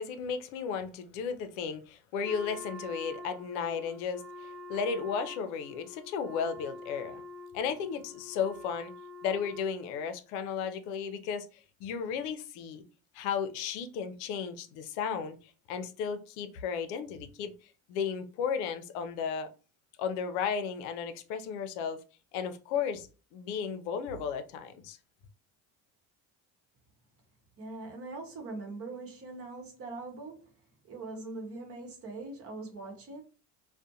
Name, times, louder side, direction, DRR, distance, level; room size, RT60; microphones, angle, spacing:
voice 1, 0.0-7.2 7.5-8.9 9.2-12.8 13.1-15.4 15.7-17.5 17.9-19.5 20.0-22.0 22.3-25.0, left 6 dB, 90° left, 0.5 m, -34 dB
Wind instrument woodwind instrument, 2.2-10.1, left 2 dB, ahead, 0.6 m, -46 dB
voice 2, 27.6-30.6 30.8-33.2, right 3 dB, 45° right, 0.9 m, -42 dB
2.4 x 2.1 x 2.7 m
supercardioid pair, 115°, 34 cm